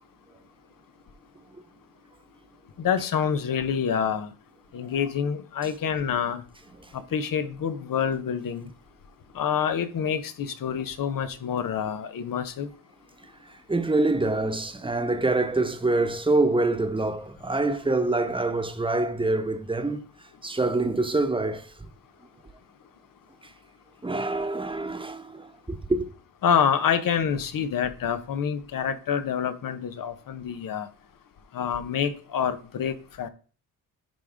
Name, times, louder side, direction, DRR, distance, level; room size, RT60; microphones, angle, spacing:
voice 1, 2.8-4.3 4.7-6.4 6.9-8.7 9.3-12.7 26.4-30.9 31.5-33.3, left 7 dB, 55° left, 1.0 m, -27 dB
voice 2, 13.7-20.0 20.4-21.9 24.0-26.1, right 2 dB, 15° right, 1.2 m, -25 dB
10.5 x 3.6 x 3.5 m
supercardioid pair, 60°, 40 cm